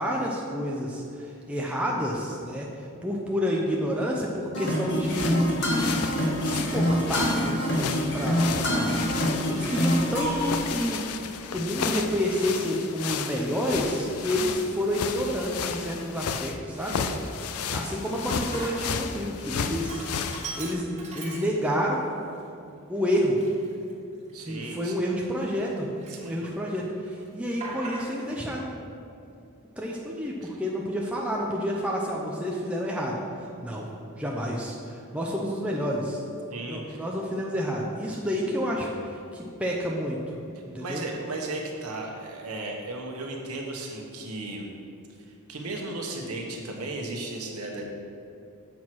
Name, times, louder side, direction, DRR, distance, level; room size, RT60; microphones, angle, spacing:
voice 1, 0.0-2.7 3.0-9.0 9.5-11.0 11.5-17.0 17.7-20.0 20.3-22.0 22.9-23.4 24.4-25.9 26.2-28.7 29.8-33.2 33.6-33.9 34.2-36.2 36.6-40.2 40.7-41.0, equal, 5° right, -3 dB, 0.6 m, -29 dB
sound 1, 4.5-10.5, equal, 50° left, 1.5 m, -26 dB
sound 2, 5.0-20.7, left 6 dB, 80° left, 0.5 m, -33 dB
Sink (filling or washing), 13.8-13.9 14.6-15.1 15.5-15.6 15.9-19.1 19.4-21.9 22.4-22.5 23.1-25.7 26.0-26.8 27.0-28.4, right 3 dB, 30° right, 1.1 m, -42 dB
voice 2, 24.3-25.1 26.1-26.4 30.4-30.6 36.5-37.1 40.8-44.7 45.3-47.8, right 2 dB, 85° right, 0 dB, 1.2 m, -36 dB
7.4 x 4.6 x 6.1 m, 2.6 s
head